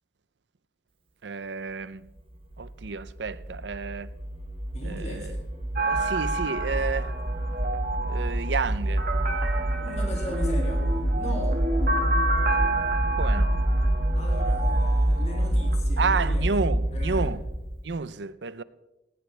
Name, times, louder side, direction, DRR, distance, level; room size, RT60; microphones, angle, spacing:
voice 1, 1.2-2.1 2.6-4.1 4.8-5.3 5.8-7.1 8.1-9.1 13.2-13.6 16.0-17.4 17.8-18.6, right 4 dB, 75° right, 0.6 m, -30 dB
sound 1, 2.5-17.8, right 1 dB, 30° right, 1.2 m, -27 dB
voice 2, 4.7-5.4 6.8-6.9 9.8-11.7 14.1-16.5 16.9-17.3, equal, 40° left, 2.5 m, -39 dB
sound 2, 5.7-15.7, right 2 dB, 50° right, 1.8 m, -30 dB
18.5 x 16.5 x 3.4 m
head